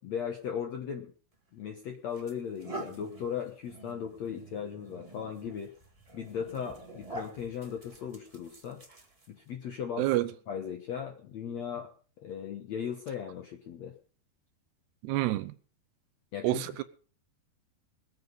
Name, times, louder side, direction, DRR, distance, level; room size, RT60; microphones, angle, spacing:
voice 1, 0.0-1.1 1.5-5.7 6.1-8.8 9.3-10.1 10.5-11.9 12.2-14.0 16.3-16.8, left 8 dB, 65° left, 1.7 m, -37 dB
sound 1, 1.3-1.5 2.1-9.5, right 2 dB, 30° right, 0.6 m, -47 dB
voice 2, 10.0-10.3 15.0-15.5 16.4-16.8, right 16 dB, 80° right, 2.9 m, -28 dB
21.5 x 8.2 x 5.2 m
omnidirectional pair, 4.7 m